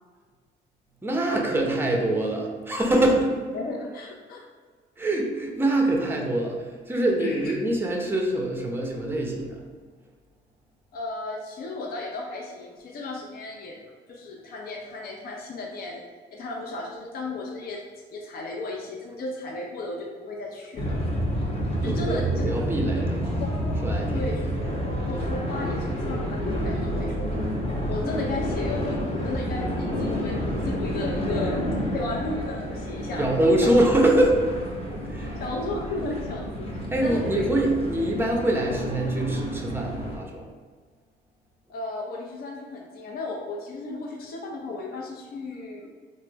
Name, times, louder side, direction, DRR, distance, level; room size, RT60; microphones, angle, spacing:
voice 1, 1.0-3.3 5.0-6.6 6.9-9.6 21.8-23.4 23.8-24.4 33.2-34.4 35.1-35.4 36.9-40.5, right 1 dB, 10° right, 0 dB, 0.5 m, -24 dB
voice 2, 3.5-4.4 7.2-7.5 10.9-16.0 16.3-17.8 18.1-21.0 21.8-22.4 23.4-23.5 24.1-24.4 25.1-27.4 27.9-31.6 31.9-33.3 33.6-33.8 34.9-35.0 35.4-36.7 37.0-37.5 41.7-45.9, left 2 dB, 50° left, -1 dB, 0.5 m, -34 dB
sound 1, 20.7-40.2, equal, 30° left, 0.8 m, -29 dB
3.3 x 2.0 x 3.2 m, 1.5 s
cardioid pair, 90°, 20 cm